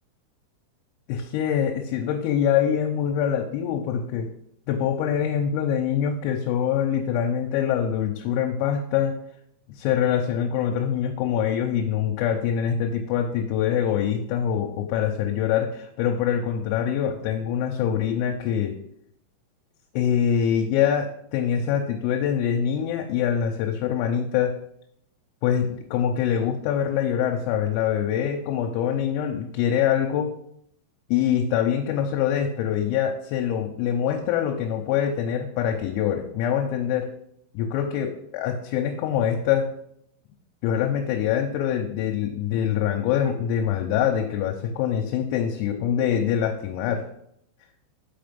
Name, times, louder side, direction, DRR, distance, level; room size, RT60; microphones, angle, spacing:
voice 1, 1.1-4.3 4.7-9.1 9.8-18.7 19.9-24.5 25.4-30.3 31.1-37.1 37.5-39.7 40.6-47.0, left 9 dB, 85° left, 2 dB, 3.4 m, -24 dB
6.0 x 5.6 x 5.1 m, 0.71 s
omnidirectional pair, 5.9 m